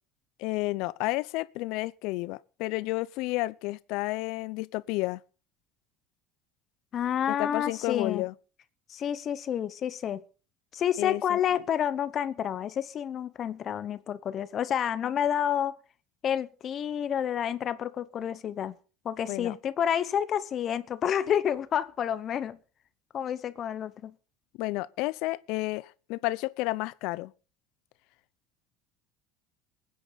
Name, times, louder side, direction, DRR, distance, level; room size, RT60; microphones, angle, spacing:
voice 1, 0.4-5.2 7.3-8.3 11.0-11.4 19.3-19.5 24.6-27.3, left 20 dB, 70° left, 0.6 m, -31 dB
voice 2, 6.9-8.3 8.9-10.2 10.7-15.7 16.2-18.7 19.0-22.6 23.1-24.1, left 9 dB, 40° left, 1.0 m, -29 dB
22.0 x 9.7 x 4.1 m
supercardioid pair, 125°, 0 cm